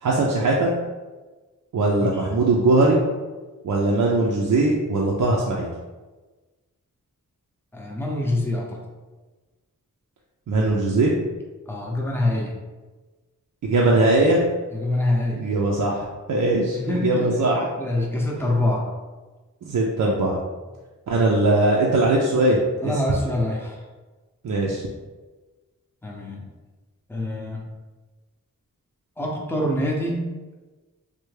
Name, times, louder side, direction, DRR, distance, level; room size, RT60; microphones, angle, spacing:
voice 1, 0.0-0.7 1.7-3.0 3.6-5.7 10.5-11.2 13.6-14.5 15.4-17.6 19.6-20.4 21.1-22.6 22.8-22.9 24.4-24.8, right 2 dB, 65° right, -3 dB, 0.5 m, -20 dB
voice 2, 7.7-8.8 11.7-12.5 14.7-15.4 16.4-16.5 16.8-18.9 22.8-23.8 26.0-26.4 27.1-27.6 29.2-30.3, left 1 dB, 5° left, -2 dB, 0.6 m, -25 dB
3.3 x 2.2 x 3.2 m, 1.2 s
wide cardioid pair, 80°, 33 cm